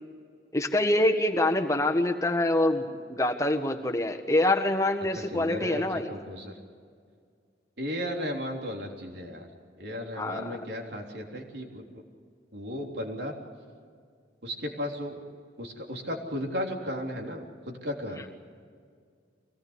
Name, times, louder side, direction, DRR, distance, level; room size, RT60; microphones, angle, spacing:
voice 1, 0.5-6.1 10.2-10.6, left 1 dB, 20° left, 4 dB, 1.5 m, -25 dB
voice 2, 5.1-6.6 7.8-9.5 9.8-12.0 12.5-13.4 14.4-15.2 15.6-18.3, equal, 75° right, 1 dB, 3.5 m, -35 dB
24.5 x 18.5 x 8.2 m, 2.1 s
head